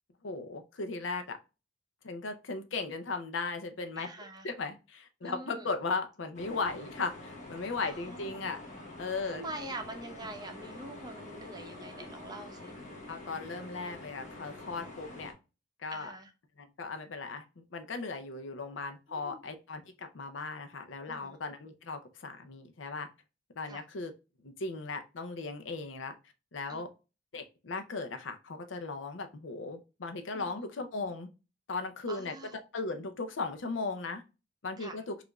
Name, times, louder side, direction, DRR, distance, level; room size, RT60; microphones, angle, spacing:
voice 1, 0.2-1.4 2.0-4.1 4.4-8.6 9.0-9.4 13.1-15.3 15.8-16.1 16.6-23.1 23.6-24.1 24.4-26.2 26.5-26.9 27.3-31.3 31.7-32.4 32.7-34.2 34.6-35.2, left 3 dB, 75° left, 0.6 m, -37 dB
voice 2, 4.0-4.5 5.2-5.7 7.8-8.4 9.2-12.7 15.9-16.3 19.1-19.4 21.1-21.4 23.7-23.8 26.7-26.9 30.3-30.6 32.1-32.6 34.8-35.0, right 2 dB, 20° right, 0.6 m, -44 dB
sound 1, 6.3-15.3, left 2 dB, 40° left, 0.9 m, -47 dB
4.9 x 2.5 x 2.2 m
head